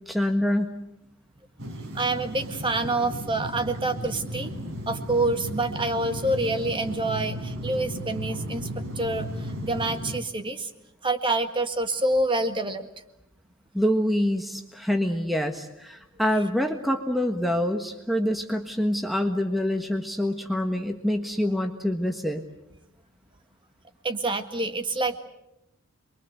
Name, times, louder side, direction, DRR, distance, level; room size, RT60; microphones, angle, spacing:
voice 1, 0.1-0.8 13.7-22.4, equal, ahead, 4 dB, 1.5 m, -26 dB
sound 1, 1.6-10.2, equal, 70° right, 4.1 m, -35 dB
voice 2, 1.9-4.5 4.9-8.7 9.0-10.7 11.0-12.9 24.0-25.2, right 2 dB, 25° right, 7 dB, 1.9 m, -27 dB
27.5 x 23.0 x 8.1 m, 0.85 s
head